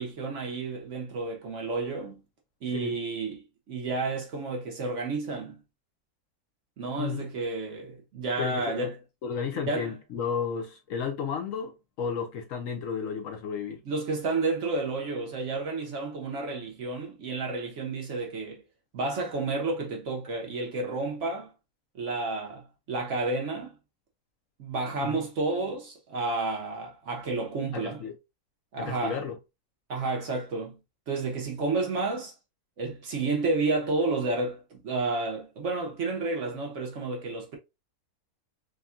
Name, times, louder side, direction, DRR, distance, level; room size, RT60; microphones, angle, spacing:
voice 1, 0.0-2.2 2.6-5.6 6.8-8.9 9.7-9.9 13.9-18.6 18.9-21.5 21.9-23.7 24.6-28.0 28.7-29.2 29.9-30.8 31.1-32.3 32.8-37.6, right 3 dB, 60° right, 0.9 m, -31 dB
voice 2, 8.4-8.9 9.2-11.7 12.0-13.8 25.0-25.2 27.7-28.2 28.8-29.4, left 6 dB, 65° left, 0.9 m, -33 dB
3.5 x 2.2 x 2.4 m
omnidirectional pair, 1.6 m